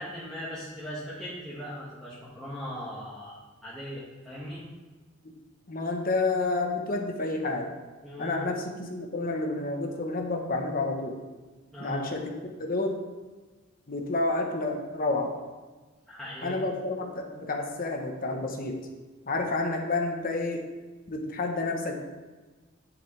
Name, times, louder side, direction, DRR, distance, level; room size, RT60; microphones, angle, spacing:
voice 1, 0.0-3.4 3.6-4.6 8.0-8.5 11.7-12.1 16.1-16.6, equal, ahead, -11 dB, 1.8 m, -39 dB
voice 2, 5.7-7.7 8.2-11.2 11.8-13.0 13.9-15.3 16.4-18.8 19.3-20.6 21.1-21.9, left 2 dB, 45° left, 3 dB, 1.2 m, -30 dB
10.5 x 7.0 x 3.4 m, 1.3 s
head